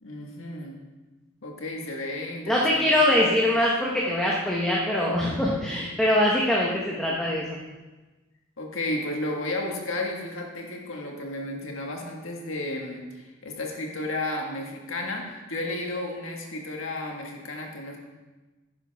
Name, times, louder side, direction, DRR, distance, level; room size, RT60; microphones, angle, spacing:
voice 1, 0.0-0.8 1.4-3.2 8.6-18.0, left 2 dB, 70° left, 0 dB, 1.7 m, -33 dB
voice 2, 2.5-7.6, left 1 dB, 5° left, -4 dB, 1.1 m, -23 dB
11.5 x 10.0 x 3.5 m, 1.2 s
head